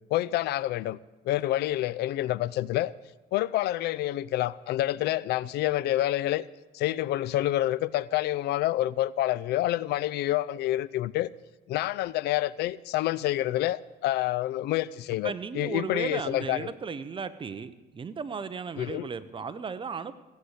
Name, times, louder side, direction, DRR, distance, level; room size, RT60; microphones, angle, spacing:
voice 1, 0.1-1.0 1.2-2.9 3.3-6.4 6.7-11.3 11.7-16.7 18.8-19.1, left 14 dB, 75° left, 0.5 m, -28 dB
voice 2, 15.2-20.1, right 5 dB, 30° right, 0.9 m, -35 dB
16.5 x 8.0 x 8.3 m
cardioid pair, 110°, 17 cm